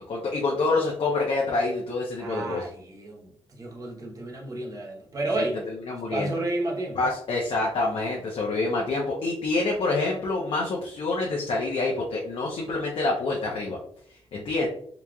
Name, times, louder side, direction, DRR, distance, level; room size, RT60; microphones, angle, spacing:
voice 1, 0.1-2.6 5.4-6.3 6.9-13.8 14.3-14.7, left 3 dB, 60° left, -3 dB, 0.8 m, -27 dB
voice 2, 2.2-5.6 6.1-7.1, right 2 dB, 35° right, -1 dB, 1.0 m, -31 dB
4.0 x 3.1 x 2.3 m, 0.63 s
cardioid pair, 95°, 11 cm